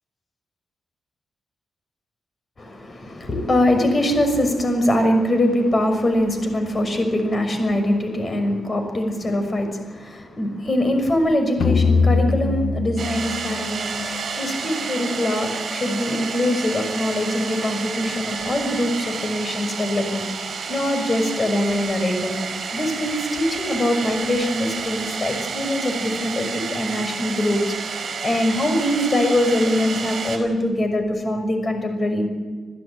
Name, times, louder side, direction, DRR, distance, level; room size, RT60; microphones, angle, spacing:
voice 1, 2.6-20.2 20.7-22.3 22.7-32.3, left 1 dB, 35° left, 6 dB, 6.1 m, -23 dB
sound 1, 11.6-14.9, left 4 dB, 90° left, 1.4 m, -22 dB
sound 2, 13.0-30.4, right 5 dB, 65° right, 5.5 m, -30 dB
28.0 x 15.5 x 8.9 m, 1.5 s
wide cardioid pair, 115°, 0 cm